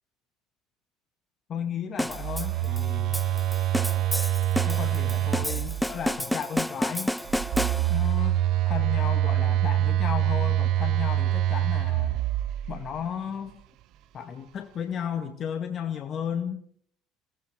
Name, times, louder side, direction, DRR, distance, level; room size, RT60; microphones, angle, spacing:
voice 1, 1.5-3.2 4.7-7.1 7.9-8.4 8.7-12.2 12.7-13.6 14.1-16.8, left 8 dB, 45° left, 6 dB, 2.2 m, -34 dB
sound 1, 2.0-8.2, equal, ahead, 0.9 m, -31 dB
Telephone, 2.1-6.1 7.3-13.0, right 13 dB, 60° right, 0.8 m, -25 dB
29.5 x 18.5 x 5.2 m, 0.63 s
hypercardioid pair, 70°, 0 cm